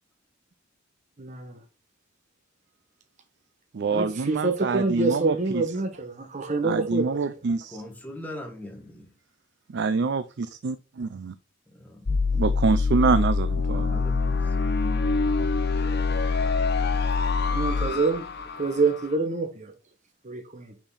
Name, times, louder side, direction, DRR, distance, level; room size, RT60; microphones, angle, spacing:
voice 1, 1.2-1.6 3.9-7.2 17.5-18.2 18.6-19.7 20.2-20.7, right 3 dB, 40° right, 1.0 m, -26 dB
voice 2, 3.7-5.6 6.6-7.8 9.7-11.3 12.3-14.0, right 4 dB, 60° right, 0.4 m, -26 dB
voice 3, 7.7-9.1 11.7-12.1 13.9-15.0 15.3-15.7, left 1 dB, 10° left, 1.6 m, -42 dB
sound 1, 12.1-19.0, left 4 dB, 55° left, 0.8 m, -25 dB
5.6 x 4.4 x 5.5 m
head